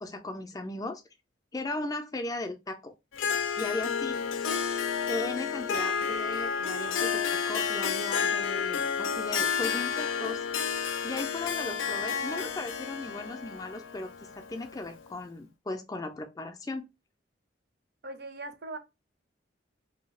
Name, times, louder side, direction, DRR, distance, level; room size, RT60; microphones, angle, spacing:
voice 1, 0.0-1.0 1.5-2.9 3.6-4.2 5.1-7.2 7.5-10.4 11.0-16.8, left 2 dB, 20° left, 0.4 m, -37 dB
Harp, 3.1-15.0, left 6 dB, 80° left, 0.4 m, -31 dB
voice 2, 18.0-18.8, right 2 dB, 55° right, 0.5 m, -40 dB
2.7 x 2.3 x 3.0 m
head